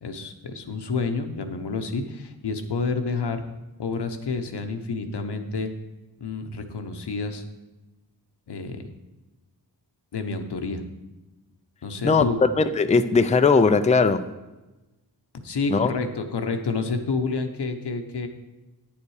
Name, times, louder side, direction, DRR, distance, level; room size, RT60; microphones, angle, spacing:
voice 1, 0.0-3.4 3.8-5.7 6.2-7.4 8.5-8.8 10.1-10.8 11.8-12.4 15.4-18.3, left 4 dB, 85° left, 1.0 m, -29 dB
voice 2, 12.6-14.2 15.7-15.9, left 4 dB, 20° left, 0.4 m, -19 dB
9.5 x 7.2 x 4.8 m
wide cardioid pair, 85°, 39 cm